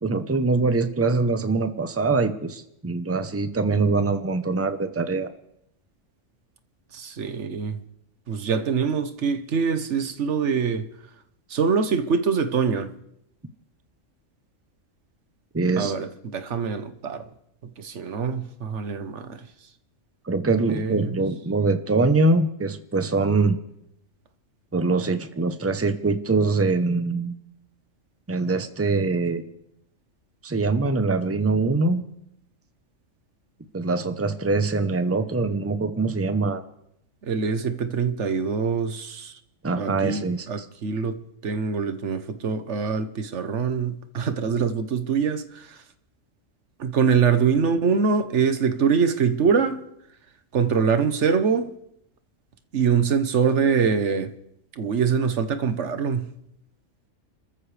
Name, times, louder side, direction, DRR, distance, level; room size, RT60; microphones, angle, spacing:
voice 1, 0.0-5.3 15.5-15.9 20.3-23.6 24.7-27.4 28.3-29.4 30.4-32.1 33.7-36.6 39.6-40.7, right 3 dB, 15° right, 0.7 m, -23 dB
voice 2, 6.9-7.8 8.3-10.9 11.5-12.9 15.8-17.2 17.8-19.4 20.7-21.1 37.2-39.3 39.8-45.7 46.8-49.8 50.5-51.7 52.7-54.3 54.8-56.3, right 6 dB, 60° right, 1.3 m, -24 dB
29.5 x 14.0 x 3.3 m
omnidirectional pair, 1.4 m